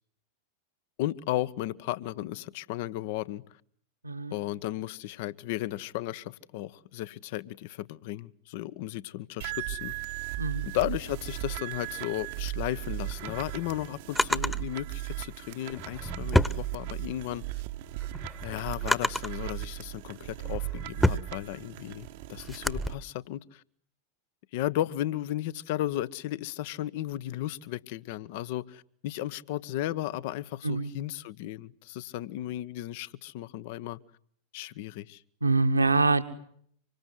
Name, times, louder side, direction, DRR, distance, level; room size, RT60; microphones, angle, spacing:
voice 1, 1.0-3.4 4.3-9.9 10.6-17.4 18.4-23.6 24.5-34.0 34.5-35.2, left 14 dB, 50° left, 1.2 m, -34 dB
sound 1, 9.4-22.9, right 17 dB, 50° right, 1.3 m, -37 dB
voice 2, 10.4-10.7 30.6-30.9 35.4-36.2, right 3 dB, 80° right, 2.0 m, -25 dB
Drawer open or close, 13.0-14.6 15.6-17.3 17.7-19.4 20.1-22.9, left 1 dB, 5° left, 1.4 m, -30 dB
26.0 x 25.5 x 7.9 m
figure-of-eight pair, 90°, 0 cm